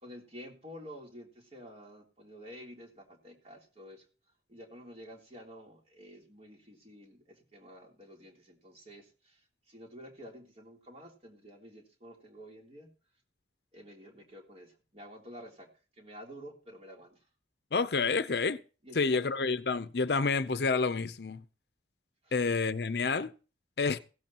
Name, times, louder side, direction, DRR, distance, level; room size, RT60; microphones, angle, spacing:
voice 1, 0.0-4.0 4.5-12.9 13.7-15.7 16.0-17.2 18.8-19.3 22.2-22.3, equal, 35° right, 3.3 m, -50 dB
voice 2, 17.7-18.6 18.9-21.4 22.3-23.3 23.8-24.0, left 4 dB, 65° left, 0.6 m, -29 dB
16.5 x 14.0 x 3.0 m
head